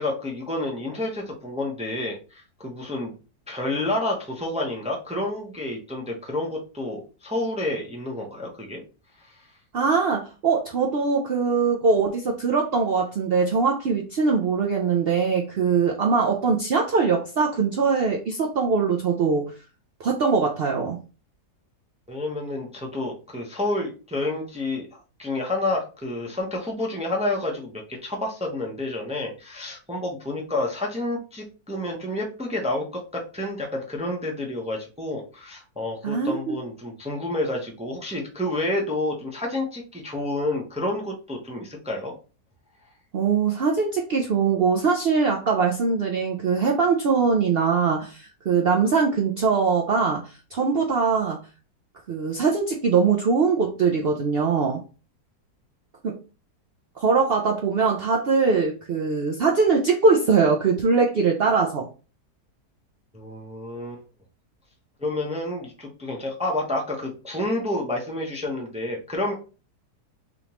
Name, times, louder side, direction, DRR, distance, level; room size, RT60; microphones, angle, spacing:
voice 1, 0.0-3.1 3.5-8.8 9.3-9.4 22.1-42.1 63.1-64.0 65.0-69.3, left 2 dB, 10° right, 0 dB, 0.5 m, -29 dB
voice 2, 9.7-19.5 20.0-21.0 36.0-36.6 43.1-51.4 52.1-54.8 56.0-56.1 57.0-61.9, right 5 dB, 80° right, 0 dB, 0.5 m, -22 dB
3.6 x 3.5 x 2.9 m, 0.33 s
omnidirectional pair, 1.7 m